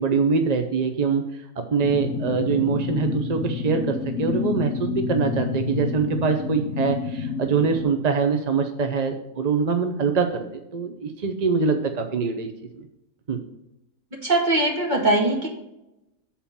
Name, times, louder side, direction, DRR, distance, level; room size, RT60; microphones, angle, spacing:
voice 1, 0.0-1.4 1.7-10.4 10.7-12.5 12.8-12.9 13.3-13.4, right 5 dB, 50° right, 6 dB, 0.5 m, -24 dB
sound 1, 1.8-7.8, left 5 dB, 65° left, 1.4 m, -28 dB
voice 2, 14.2-15.5, right 2 dB, 30° right, -1 dB, 2.1 m, -21 dB
7.4 x 4.4 x 7.0 m, 0.89 s
omnidirectional pair, 1.6 m